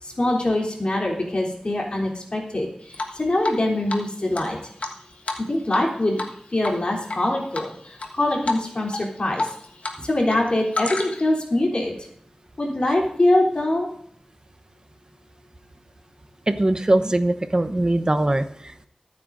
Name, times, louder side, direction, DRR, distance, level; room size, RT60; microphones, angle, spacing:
voice 1, 0.0-4.6 5.5-6.2 6.5-9.5 10.0-12.1 12.6-13.9, left 1 dB, 50° left, -2 dB, 3.4 m, -23 dB
Drip, 2.9-3.6 3.9-4.0 4.3-5.9 6.2-6.3 6.6-7.2 7.5-8.1 8.4-8.6 8.9-10.0 10.2-11.4, left 2 dB, 80° left, 1.4 m, -29 dB
voice 2, 16.5-18.9, right 1 dB, 35° right, 10 dB, 0.9 m, -21 dB
24.0 x 8.6 x 2.6 m, 0.70 s
wide cardioid pair, 70°, 2 cm